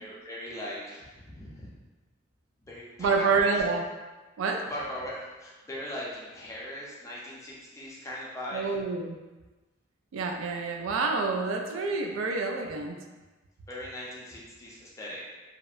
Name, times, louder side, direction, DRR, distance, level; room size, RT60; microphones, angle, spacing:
voice 1, 0.0-1.7 2.6-3.6 4.7-8.6 13.7-15.2, left 1 dB, 15° left, -6 dB, 0.5 m, -39 dB
voice 2, 3.0-3.9 4.4-4.7 8.5-9.2 10.1-13.0, right 4 dB, 85° right, 3 dB, 0.3 m, -28 dB
2.7 x 2.0 x 2.3 m, 1.2 s
head